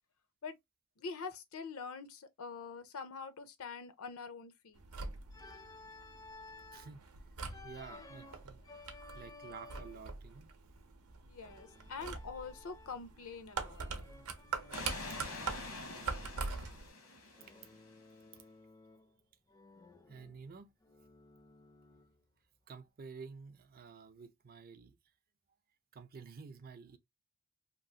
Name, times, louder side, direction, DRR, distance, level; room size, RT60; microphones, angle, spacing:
voice 1, 1.0-4.8 11.3-13.8 14.3-14.4, left 5 dB, 65° left, 0.5 m, -45 dB
sound 1, 4.8-16.9, right 4 dB, 85° right, 0.7 m, -44 dB
Organ, 5.3-6.9 7.5-10.1 11.4-13.1 13.5-15.8 17.4-19.2 19.5-22.2, left 3 dB, 15° left, 0.4 m, -56 dB
voice 2, 7.6-8.6 9.1-10.5 18.3-18.4 20.1-20.7 22.7-25.0 25.9-27.0, right 5 dB, 40° right, 0.5 m, -51 dB
sound 2, 14.7-18.1, left 2 dB, 85° left, 1.1 m, -46 dB
2.9 x 2.4 x 2.7 m
head